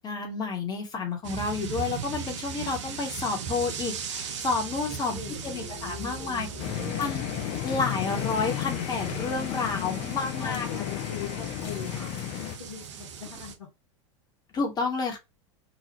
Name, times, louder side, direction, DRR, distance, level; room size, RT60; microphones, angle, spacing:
voice 1, 0.0-5.2 5.4-6.5 7.0-7.2 7.6-10.7 14.5-15.2, left 4 dB, 25° left, 1.0 m, -30 dB
sound 1, 1.2-13.5, right 6 dB, 70° right, 0.7 m, -38 dB
voice 2, 5.1-7.1 10.4-13.7, left 7 dB, 80° left, 1.1 m, -41 dB
sound 2, 6.6-12.6, left 13 dB, 40° left, 0.4 m, -33 dB
3.0 x 2.3 x 2.9 m
figure-of-eight pair, 85°, 16 cm